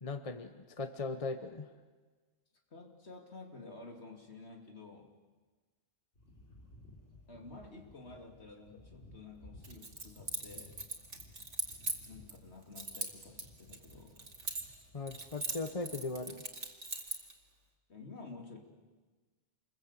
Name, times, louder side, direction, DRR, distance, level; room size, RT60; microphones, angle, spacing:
voice 1, 0.0-1.7 14.9-16.4, left 3 dB, 30° left, 9 dB, 1.1 m, -39 dB
voice 2, 2.7-5.1 7.3-10.8 12.1-14.4 17.9-18.6, left 3 dB, 65° left, 3 dB, 3.1 m, -51 dB
sound 1, 6.1-16.3, left 1 dB, 85° left, 4.0 m, -58 dB
Keys jangling, 9.6-12.4 12.8-14.8 15.1-17.3, right 3 dB, 85° right, 2.7 m, -40 dB
27.5 x 21.5 x 8.3 m, 1.3 s
omnidirectional pair, 1.2 m